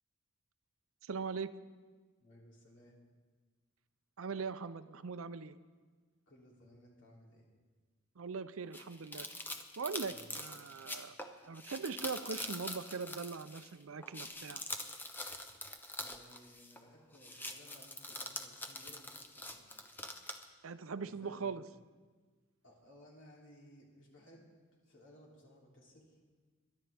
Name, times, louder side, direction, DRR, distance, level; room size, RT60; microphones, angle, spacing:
voice 1, 1.0-1.5 4.2-5.6 8.2-9.3 9.8-11.1 11.5-14.6 20.6-21.6, right 5 dB, 75° right, 13 dB, 0.6 m, -41 dB
voice 2, 2.2-3.0 6.3-7.5 10.1-10.8 15.9-19.9 20.2-20.7 21.0-21.7 22.6-24.5 24.8-26.2, equal, 60° left, -3 dB, 3.0 m, -60 dB
sound 1, 8.7-13.7 14.0-16.9 17.1-20.4, left 1 dB, 10° left, 0.7 m, -44 dB
22.5 x 11.0 x 3.5 m, 1.4 s
head